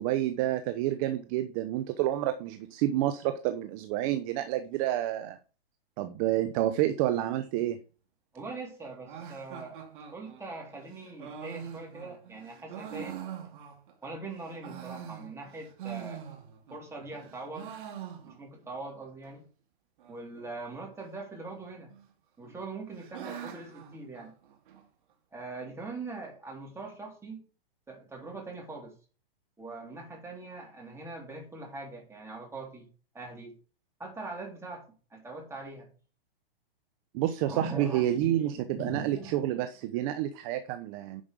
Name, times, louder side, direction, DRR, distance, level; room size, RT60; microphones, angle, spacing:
voice 1, 0.0-5.4 6.0-7.8 37.1-41.2, right 13 dB, 35° right, 9 dB, 0.8 m, -29 dB
voice 2, 8.3-9.8 10.1-13.2 14.0-16.2 16.7-17.7 18.3-19.5 20.1-21.9 22.4-24.3 25.3-27.5 27.9-28.9 29.6-32.9 33.1-33.5 34.0-34.8 35.1-35.9 37.4-39.3, right 3 dB, 10° right, -1 dB, 3.7 m, -42 dB
sound 1, 9.1-14.1 14.4-16.8 17.1-18.7 18.9-19.0 19.2-19.3 20.0-20.4 21.4-22.0 22.4-24.8, right 9 dB, 55° right, 2.4 m, -44 dB
10.0 x 5.3 x 5.2 m, 0.38 s
hypercardioid pair, 125°, 30 cm